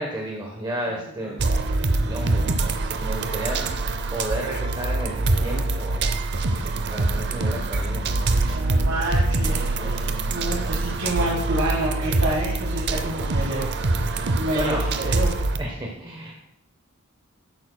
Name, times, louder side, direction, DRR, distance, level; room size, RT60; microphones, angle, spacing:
voice 1, 0.0-1.6 1.9-2.7 3.0-3.7 4.1-8.1 8.5-8.6 9.8-10.2 14.1-14.3 14.5-14.8 15.6-16.3, right 1 dB, 20° right, -1 dB, 1.0 m, -33 dB
sound 1, 1.4-15.6, right 2 dB, 55° right, 0.6 m, -24 dB
voice 2, 8.4-15.4, right 1 dB, 80° right, -4 dB, 1.7 m, -29 dB
11.5 x 8.5 x 2.3 m, 0.79 s
head